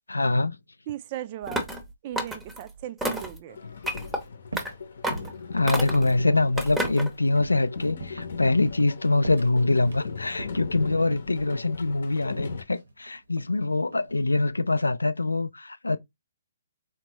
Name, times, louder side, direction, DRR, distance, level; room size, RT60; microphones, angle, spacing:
voice 1, 0.1-0.6 5.5-16.0, left 2 dB, 90° left, 0.3 m, -24 dB
voice 2, 0.9-1.7 2.0-3.6, right 12 dB, 35° right, 0.4 m, -37 dB
sound 1, 1.5-1.8 2.2-2.6 3.0-3.4 3.8-4.2 4.6-4.7 5.0-5.3 5.7-6.1 6.6-7.1, right 1 dB, 5° right, 0.7 m, -30 dB
sound 2, 3.5-12.6, left 5 dB, 65° left, 0.7 m, -38 dB
sound 3, 4.5-4.8 5.1-7.1 7.4-7.6 8.0-8.3 8.7-8.9 9.2-10.1 10.4-11.7 12.7-13.6 13.9-14.3, right 2 dB, 80° right, 1.1 m, -40 dB
4.3 x 2.1 x 3.0 m
figure-of-eight pair, 135°, 0 cm